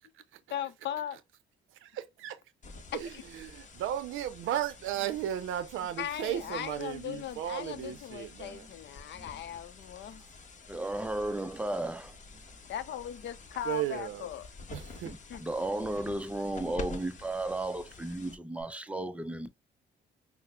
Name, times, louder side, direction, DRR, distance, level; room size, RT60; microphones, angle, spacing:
voice 1, 0.5-1.2 2.9-3.2 6.0-10.2 12.7-14.4 15.3-15.4, left 10 dB, 60° left, 0.5 m, -38 dB
voice 2, 1.8-2.4 2.9-8.6 13.7-14.2 14.7-15.1, right 11 dB, 80° right, 0.5 m, -35 dB
sound 1, 2.6-18.6, left 3 dB, 40° left, 0.9 m, -49 dB
voice 3, 10.7-12.2 15.0-19.5, right 1 dB, 5° right, 0.4 m, -34 dB
5.6 x 2.0 x 2.2 m
cardioid pair, 90°, 20 cm